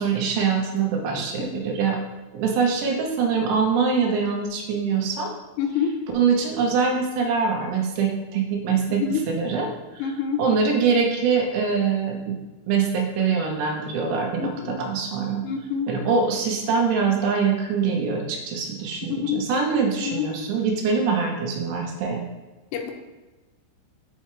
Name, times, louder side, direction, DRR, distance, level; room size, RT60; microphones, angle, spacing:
voice 1, 0.0-2.0 2.3-5.3 6.1-9.7 9.9-10.1 10.4-12.4 12.7-15.4 15.9-22.2, right 5 dB, 85° right, 1 dB, 3.1 m, -23 dB
voice 2, 5.6-6.0 9.0-9.3 10.0-10.4 14.4-14.8 15.4-15.9 19.0-19.5 20.0-20.3 22.7-22.9, left 7 dB, 90° left, 3 dB, 2.9 m, -27 dB
7.0 x 5.6 x 3.1 m, 1.2 s
omnidirectional pair, 4.8 m